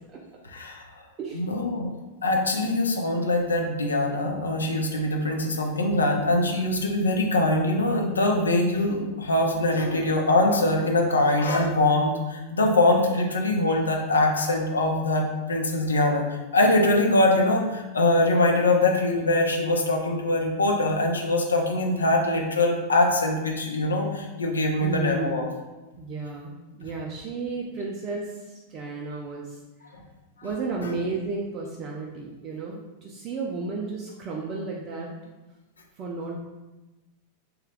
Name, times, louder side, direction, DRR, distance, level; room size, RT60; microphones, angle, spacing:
voice 1, 0.5-0.8 1.3-1.9 2.2-25.5 30.4-30.5 30.8-30.9, left 2 dB, 75° left, 2 dB, 0.5 m, -23 dB
voice 2, 24.8-25.5 26.0-29.9 30.4-35.1 36.0-36.4, right 3 dB, 35° right, -2 dB, 0.4 m, -33 dB
3.1 x 2.3 x 3.3 m, 1.1 s
figure-of-eight pair, 90°, 0 cm